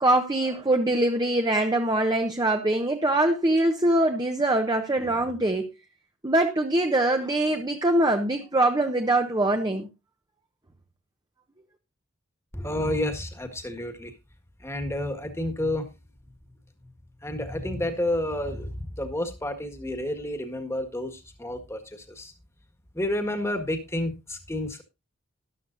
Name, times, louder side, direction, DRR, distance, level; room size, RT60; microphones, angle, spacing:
voice 1, 0.0-5.7 6.2-9.9, right 1 dB, 20° right, 1.0 m, -23 dB
voice 2, 12.5-14.1 14.6-15.9 17.2-22.3 22.9-24.8, left 1 dB, 15° left, 1.7 m, -30 dB
13.5 x 11.5 x 2.6 m
head